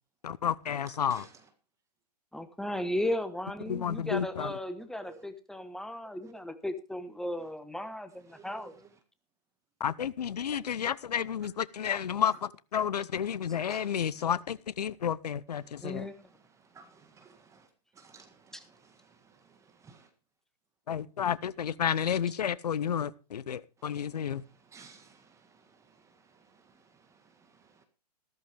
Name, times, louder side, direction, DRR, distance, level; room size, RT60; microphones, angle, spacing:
voice 1, 0.2-1.3 3.7-4.5 9.8-16.1 20.9-24.4, left 8 dB, 75° left, 0.8 m, -31 dB
voice 2, 2.3-8.7 15.8-16.1 18.5-18.6, left 1 dB, ahead, 1.1 m, -35 dB
voice 3, 16.7-17.7 17.9-20.1 23.8-24.0 24.6-27.8, right 5 dB, 15° right, 1.6 m, -56 dB
14.0 x 13.5 x 3.4 m
hypercardioid pair, 120°, 21 cm